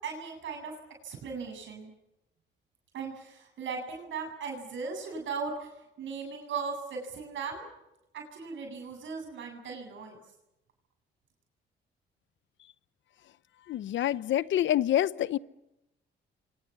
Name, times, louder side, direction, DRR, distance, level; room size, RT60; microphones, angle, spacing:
voice 1, 0.0-0.7 1.0-1.9 2.9-7.7 8.1-10.2, right 5 dB, 70° right, 8.0 m, -38 dB
voice 2, 13.7-15.4, left 12 dB, 70° left, 0.9 m, -27 dB
29.5 x 24.5 x 7.2 m
cardioid pair, 90°, 20 cm